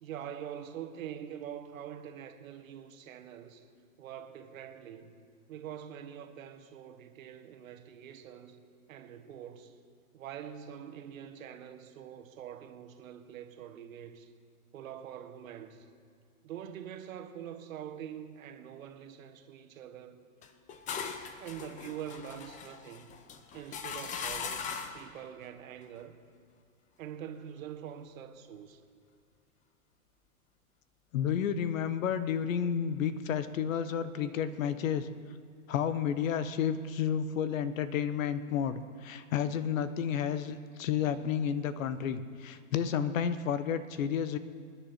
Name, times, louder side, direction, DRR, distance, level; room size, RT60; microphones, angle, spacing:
voice 1, 0.0-3.6 4.0-5.2 5.5-8.6 8.9-9.7 10.1-14.3 14.7-15.9 16.4-20.2 21.4-23.2 23.5-26.2 27.0-28.8, right 9 dB, 65° right, 1.6 m, -44 dB
sound 1, 20.4-25.1, left 6 dB, 15° left, 0.7 m, -40 dB
voice 2, 31.1-35.1 35.7-44.4, left 8 dB, 60° left, 1.0 m, -31 dB
26.5 x 10.0 x 4.3 m
hypercardioid pair, 125°, 44 cm